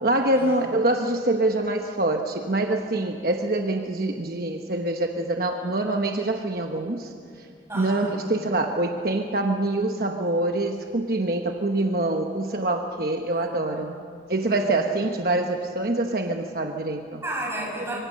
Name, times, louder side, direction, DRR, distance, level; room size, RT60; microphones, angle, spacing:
voice 1, 0.0-7.1 7.4-7.5 7.7-14.0 14.3-17.2, right 2 dB, 55° right, 3 dB, 1.1 m, -25 dB
voice 2, 7.7-8.1 13.3-14.3 14.7-14.9 17.2-17.9, right 1 dB, 15° right, -4 dB, 7.5 m, -34 dB
25.0 x 24.5 x 6.7 m, 2.4 s
head